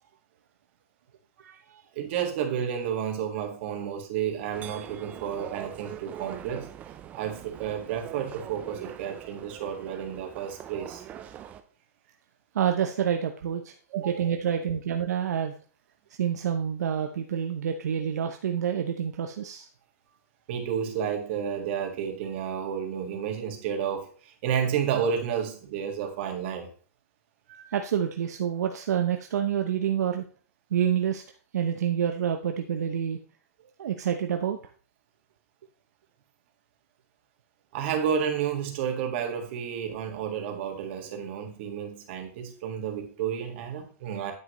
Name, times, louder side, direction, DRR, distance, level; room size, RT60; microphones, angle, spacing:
voice 1, 1.4-1.8 12.5-15.6 16.2-19.7 27.7-30.2 30.7-31.2 31.5-33.2 33.8-34.6, right 9 dB, 80° right, 0.8 m, -28 dB
voice 2, 1.9-6.7 7.1-11.0 13.9-14.1 20.5-26.7 27.5-27.7 37.7-44.3, right 8 dB, 40° right, 1.8 m, -31 dB
sound 1, 4.5-11.6, right 10 dB, 15° right, 0.5 m, -43 dB
9.6 x 7.4 x 3.1 m
hypercardioid pair, 165°, 9 cm